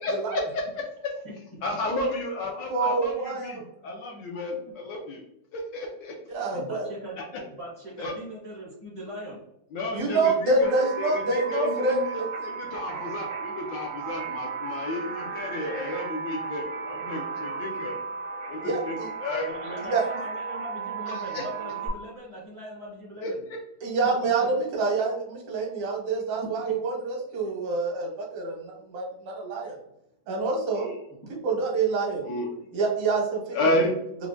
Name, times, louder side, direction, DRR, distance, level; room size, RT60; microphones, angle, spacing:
voice 1, 0.0-0.6 1.6-5.2 5.5-6.1 7.2-7.3 8.0-8.1 9.7-10.7 11.0-18.0 18.5-19.5 21.1-21.4 23.2-23.6 30.7-31.0 32.2-32.7 33.5-33.9, left 1 dB, 75° left, -1 dB, 1.1 m, -32 dB
voice 2, 2.7-3.5 6.3-6.9 9.9-12.3 18.6-19.1 19.9-20.0 23.8-29.8 30.3-30.9 31.4-32.2 32.7-33.6, right 3 dB, 90° right, -1 dB, 1.9 m, -26 dB
voice 3, 6.6-7.2 7.5-9.4 19.4-23.4, equal, 30° left, -7 dB, 0.5 m, -40 dB
sound 1, 10.6-21.9, right 5 dB, 70° right, 0.8 m, -35 dB
4.6 x 2.1 x 2.5 m, 0.81 s
omnidirectional pair, 2.4 m